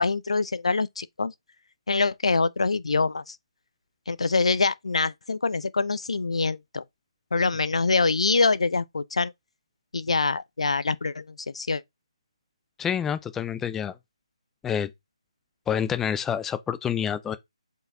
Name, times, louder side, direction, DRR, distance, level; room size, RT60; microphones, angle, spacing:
voice 1, 0.0-1.3 1.9-3.4 4.1-6.8 7.3-9.3 9.9-11.8, left 4 dB, 70° left, 0.6 m, -25 dB
voice 2, 12.8-13.9 14.6-14.9 15.7-17.4, left 8 dB, 5° left, 0.4 m, -27 dB
7.8 x 4.6 x 2.7 m
figure-of-eight pair, 155°, 3 cm